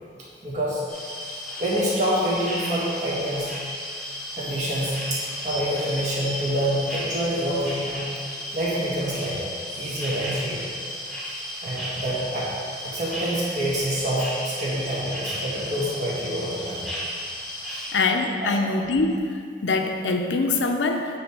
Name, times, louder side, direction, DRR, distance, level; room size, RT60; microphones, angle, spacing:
voice 1, 0.4-0.8 1.6-3.5 4.3-8.0 8.5-9.5 9.8-10.7 11.6-12.5 12.8-16.9 17.7-17.8 18.4-18.5, right 1 dB, 40° right, -7 dB, 1.5 m, -27 dB
sound 1, 0.9-17.9, left 1 dB, ahead, 1.1 m, -34 dB
voice 2, 17.9-19.3 19.6-21.2, left 3 dB, 90° left, 4 dB, 0.6 m, -23 dB
8.9 x 3.4 x 4.8 m, 2.2 s
head